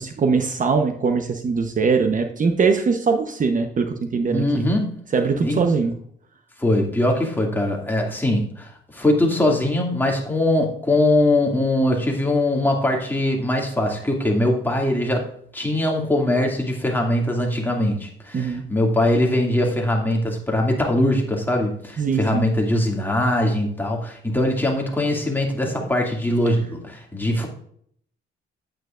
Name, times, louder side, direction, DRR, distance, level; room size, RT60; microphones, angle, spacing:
voice 1, 0.0-4.6 5.1-5.9 18.3-18.6 22.0-22.5, right 5 dB, 40° right, 6 dB, 0.9 m, -21 dB
voice 2, 4.3-5.0 5.4-5.7 6.6-15.3 15.5-27.5, left 1 dB, 10° left, 0 dB, 2.3 m, -21 dB
9.0 x 8.9 x 2.5 m, 0.63 s
cardioid pair, 90°, 20 cm